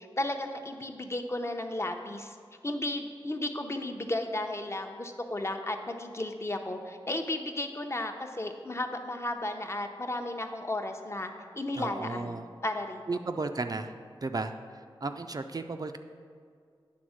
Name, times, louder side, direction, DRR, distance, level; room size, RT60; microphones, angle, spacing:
voice 1, 0.0-2.4 2.6-13.0, left 1 dB, 30° left, 5 dB, 0.7 m, -34 dB
voice 2, 11.8-12.5 13.1-13.9 14.2-14.5 15.0-16.0, right 3 dB, 45° right, 7 dB, 0.4 m, -34 dB
9.3 x 3.6 x 6.2 m, 2.1 s
wide cardioid pair, 60°, 9 cm